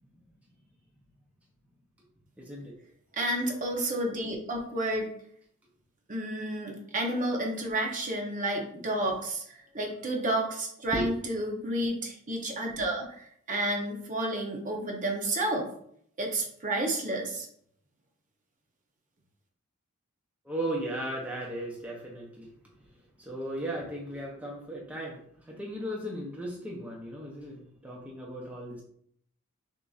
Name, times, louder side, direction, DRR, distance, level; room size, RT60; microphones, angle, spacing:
voice 1, 2.4-2.7 10.9-11.1 20.4-22.5 23.2-28.8, right 1 dB, 5° right, -3 dB, 0.6 m, -36 dB
voice 2, 3.1-5.1 6.1-15.7 16.2-17.5, right 1 dB, 35° right, 1 dB, 0.8 m, -31 dB
6.3 x 2.7 x 2.4 m, 0.66 s
head